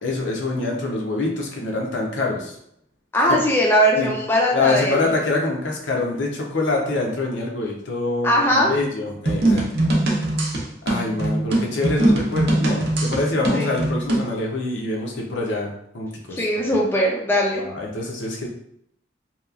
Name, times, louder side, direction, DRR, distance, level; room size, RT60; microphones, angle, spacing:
voice 1, 0.0-2.5 3.3-3.4 4.0-4.1 4.5-9.7 10.9-16.8 17.6-18.5, left 2 dB, 80° left, -1 dB, 0.6 m, -25 dB
voice 2, 3.1-5.1 8.2-8.7 13.5-13.7 16.4-17.6, equal, 10° left, -3 dB, 0.4 m, -20 dB
sound 1, 9.3-14.3, right 1 dB, 55° right, 0.6 m, -21 dB
2.9 x 2.3 x 2.3 m, 0.71 s
head